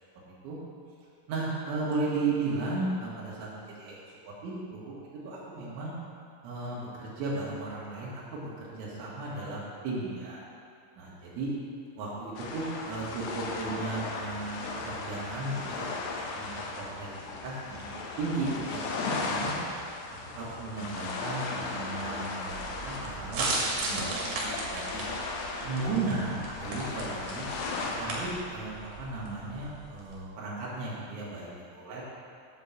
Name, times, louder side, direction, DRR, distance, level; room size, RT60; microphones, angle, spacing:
voice 1, 1.3-4.0 4.3-5.0 5.2-5.9 6.4-10.4 11.0-11.5 12.0-17.1 17.4-17.9 18.2-19.6 20.3-25.0 25.6-27.5 27.8-32.0, right 3 dB, 80° right, -7 dB, 4.0 m, -35 dB
sound 1, 12.4-28.4, left 3 dB, 85° left, 3.4 m, -37 dB
sound 2, 22.5-30.2, right 2 dB, 60° right, 2.9 m, -36 dB
10.0 x 4.6 x 7.2 m, 2.4 s
omnidirectional pair, 5.4 m